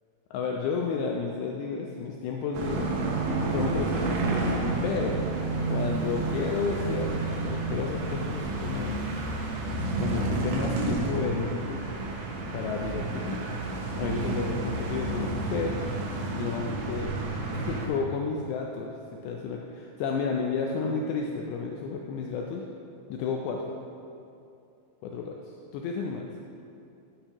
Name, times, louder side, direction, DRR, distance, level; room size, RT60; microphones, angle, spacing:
voice 1, 0.3-2.9 3.4-4.5 4.8-5.1 5.7-9.1 10.0-11.9 12.5-13.4 14.0-15.8 16.3-17.2 17.5-18.9 19.2-22.6 23.1-23.7 25.0-26.3, left 5 dB, 80° left, 1 dB, 2.6 m, -32 dB
sound 1, 2.5-17.9, right 2 dB, 85° right, 3.5 m, -30 dB
13.0 x 8.8 x 2.9 m, 2.6 s
omnidirectional pair, 5.2 m